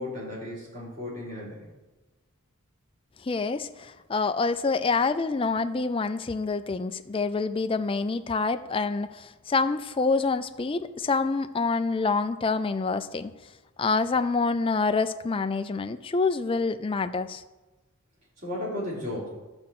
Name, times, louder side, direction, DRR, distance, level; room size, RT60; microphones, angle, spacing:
voice 1, 0.0-1.6 18.4-19.3, left 1 dB, 35° right, -5 dB, 3.8 m, -34 dB
voice 2, 3.2-13.3 13.8-17.4, left 4 dB, 25° left, 10 dB, 0.4 m, -27 dB
12.5 x 4.4 x 7.6 m, 1.1 s
head